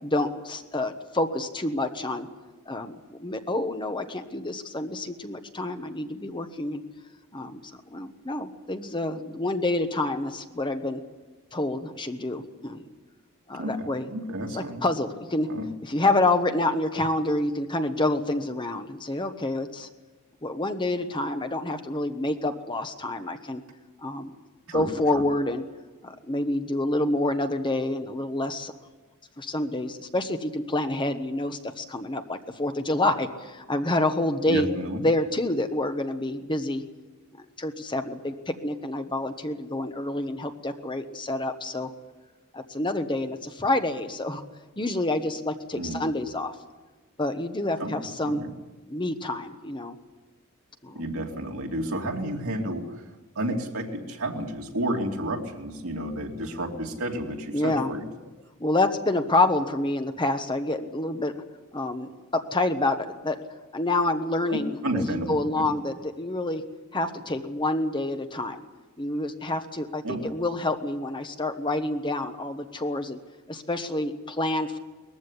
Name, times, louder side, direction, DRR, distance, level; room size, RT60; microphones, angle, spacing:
voice 1, 0.0-2.3 2.7-6.8 7.3-7.6 7.9-11.0 11.5-12.8 13.5-14.1 14.5-15.5 15.8-19.9 20.4-23.6 24.0-24.3 24.7-25.6 26.0-28.7 29.4-34.7 35.0-36.8 37.3-41.9 42.5-44.4 44.8-46.5 47.2-48.5 48.9-50.0 50.8-51.0 57.5-57.9 58.6-61.3 61.7-62.1 62.5-63.4 63.7-66.6 66.9-68.6 69.0-73.2 73.5-74.8, left 2 dB, 20° left, 7 dB, 1.2 m, -28 dB
voice 2, 13.5-14.8 15.5-15.7 24.7-25.2 34.5-35.0 45.8-46.0 47.8-47.9 48.2-48.5 50.9-53.0 53.4-58.0 64.5-65.7 70.0-70.2, right 1 dB, 70° right, 1 dB, 2.7 m, -31 dB
20.5 x 15.0 x 9.9 m, 1.2 s
head